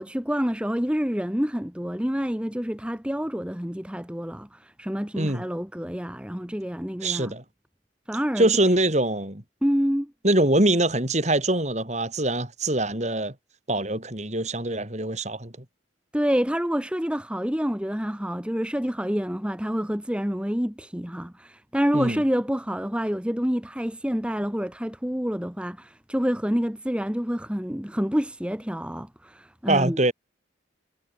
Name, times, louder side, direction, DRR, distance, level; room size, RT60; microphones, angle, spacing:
voice 1, 0.0-7.3 8.1-8.5 9.6-10.1 16.1-30.0, equal, 5° right, 1.2 m, -27 dB
voice 2, 7.0-7.4 8.4-9.4 10.2-13.3 13.7-15.5 21.9-22.2 29.7-30.1, right 1 dB, 35° right, 4.3 m, -23 dB
head